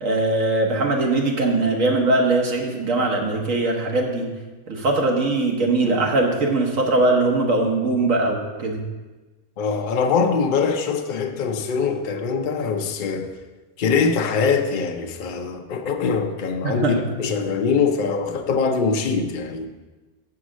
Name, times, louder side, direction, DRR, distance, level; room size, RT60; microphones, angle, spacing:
voice 1, 0.0-4.3 4.7-8.8 16.6-17.1, right 2 dB, 80° right, 1.5 m, -21 dB
voice 2, 9.6-13.3 13.8-19.7, left 5 dB, 50° left, 0.6 m, -23 dB
7.1 x 4.8 x 6.2 m
omnidirectional pair, 1.4 m